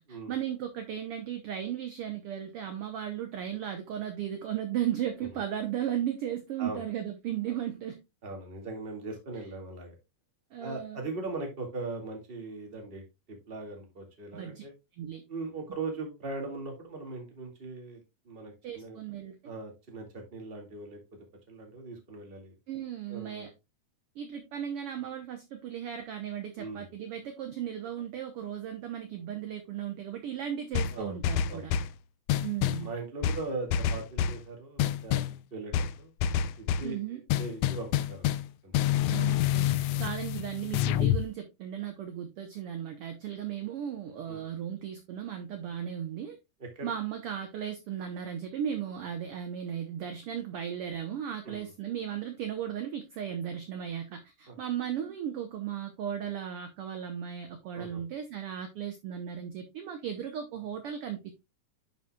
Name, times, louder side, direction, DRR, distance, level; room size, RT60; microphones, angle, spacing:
voice 1, 0.0-8.0 10.5-11.1 14.3-14.6 15.0-15.2 18.6-19.3 22.7-23.5 24.1-31.7 32.4-32.9 36.8-37.2 39.1-46.4 46.8-61.3, right 9 dB, 65° right, 1.6 m, -36 dB
voice 2, 8.2-9.9 10.6-14.7 15.3-18.0 18.3-19.0 19.4-21.0 21.5-22.5 23.1-23.5 26.6-26.8 30.9-31.2 31.5-31.7 32.8-35.2 35.5-36.1 36.6-38.4 38.6-39.1 39.9-40.1 44.3-44.4 46.6-46.9 51.4-51.7 54.5-54.6 57.7-58.0, right 3 dB, 20° right, 2.1 m, -40 dB
sound 1, 30.7-32.0 32.3-32.9 33.2-34.4 34.8-35.4 35.7-36.9 37.3-38.5 38.7-41.2, left 10 dB, 80° left, 1.6 m, -28 dB
11.0 x 5.6 x 2.3 m
omnidirectional pair, 3.3 m